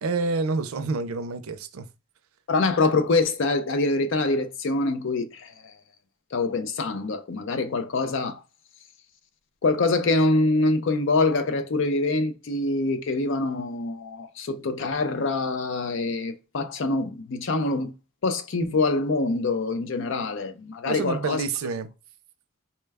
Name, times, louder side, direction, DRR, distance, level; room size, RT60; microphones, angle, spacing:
voice 1, 0.0-1.9 20.8-21.9, right 3 dB, 90° right, 0.5 m, -28 dB
voice 2, 2.5-5.7 6.3-8.4 9.6-17.9 18.2-21.4, left 3 dB, 60° left, 0.5 m, -25 dB
4.3 x 2.2 x 3.3 m
head